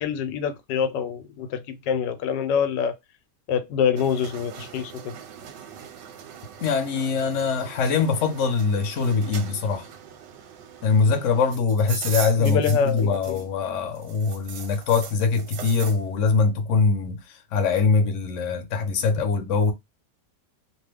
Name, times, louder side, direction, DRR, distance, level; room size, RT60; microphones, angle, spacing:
voice 1, 0.0-2.9 3.5-5.2 12.4-13.4, left 7 dB, 90° left, 1.3 m, -26 dB
sound 1, 4.0-13.6 13.9-16.0, right 8 dB, 85° right, 1.3 m, -40 dB
voice 2, 6.6-9.9 10.8-17.2 17.5-19.7, left 4 dB, 55° left, 0.9 m, -23 dB
2.9 x 2.2 x 3.3 m
omnidirectional pair, 1.9 m